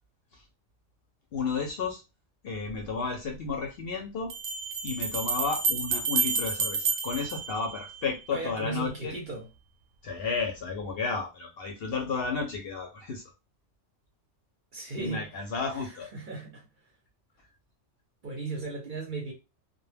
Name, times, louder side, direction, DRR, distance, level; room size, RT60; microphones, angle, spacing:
voice 1, 1.3-2.0 2.4-4.3 4.8-9.2 10.0-13.2 15.0-16.1, left 4 dB, 60° left, 0.7 m, -32 dB
sound 1, 2.7-2.8 4.3-8.3, right 4 dB, 75° right, 1.0 m, -30 dB
voice 2, 8.1-9.5 14.7-15.4 15.7-16.7 18.2-19.3, right 3 dB, 50° right, 0.7 m, -37 dB
2.2 x 2.1 x 3.2 m
omnidirectional pair, 1.3 m